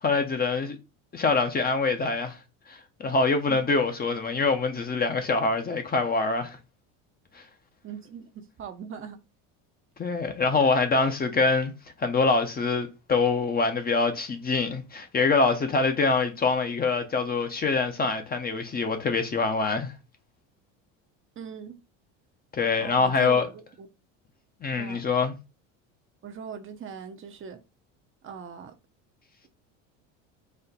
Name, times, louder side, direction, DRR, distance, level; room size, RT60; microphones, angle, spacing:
voice 1, 0.0-0.8 1.1-2.4 2.7-6.6 10.0-11.7 12.0-19.9 22.6-23.5 24.6-25.3, left 4 dB, 25° left, 0.7 m, -25 dB
voice 2, 7.8-8.3 8.6-9.2 21.4-21.8 22.8-23.9 24.8-25.0 26.2-27.6 28.2-28.7, right 7 dB, 35° right, 0.7 m, -40 dB
4.2 x 2.1 x 4.0 m
supercardioid pair, 95°, 38 cm